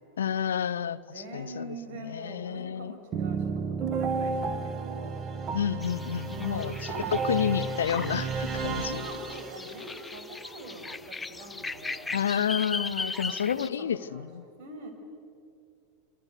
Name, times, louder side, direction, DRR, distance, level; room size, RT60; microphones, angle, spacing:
voice 1, 0.2-1.7 2.0-3.0 5.5-9.0 12.1-14.4, left 8 dB, 75° left, 17 dB, 0.7 m, -30 dB
voice 2, 1.1-5.2 6.3-7.4 8.8-12.2 13.2-14.9, right 1 dB, 55° right, 5 dB, 6.7 m, -43 dB
sound 1, 3.1-9.9, right 5 dB, 35° right, 1.9 m, -32 dB
sound 2, 5.8-13.7, left 3 dB, 10° left, 0.8 m, -38 dB
26.5 x 26.5 x 8.3 m, 2.3 s
figure-of-eight pair, 90°, 0 cm